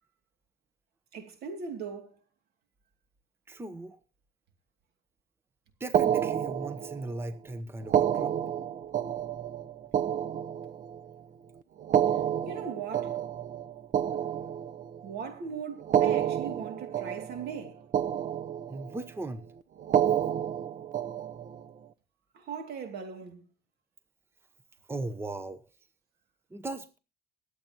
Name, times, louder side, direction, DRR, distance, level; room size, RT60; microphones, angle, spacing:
voice 1, 1.1-2.2 12.5-13.2 15.0-17.8 22.3-23.5, right 6 dB, 70° right, 2.6 m, -39 dB
voice 2, 3.5-4.0 5.8-8.4 18.7-19.5 24.9-25.6 26.5-27.0, right 2 dB, 15° right, 0.9 m, -38 dB
sound 1, 5.9-7.2 7.8-11.1 11.8-15.1 15.8-17.7 17.9-19.0 19.8-21.6, right 10 dB, 50° right, 0.8 m, -29 dB
22.5 x 8.2 x 2.9 m
cardioid pair, 110°, 17 cm